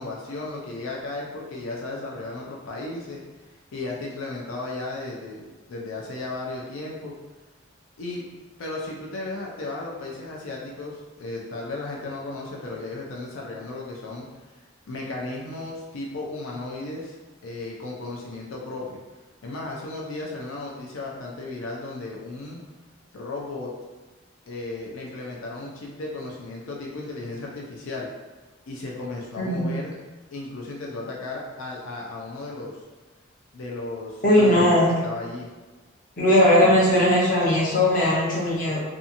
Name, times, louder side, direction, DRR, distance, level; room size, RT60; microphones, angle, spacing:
voice 1, 0.0-3.2 3.7-7.1 8.0-8.2 8.6-14.3 14.9-17.2 17.4-19.0 19.4-22.6 23.1-23.7 24.5-28.1 28.7-29.9 30.3-32.9 33.5-35.5, left 2 dB, 90° left, -2 dB, 0.4 m, -35 dB
voice 2, 34.2-35.0 36.2-38.8, left 1 dB, 40° left, -5 dB, 0.7 m, -19 dB
2.7 x 2.3 x 2.5 m, 1.2 s
head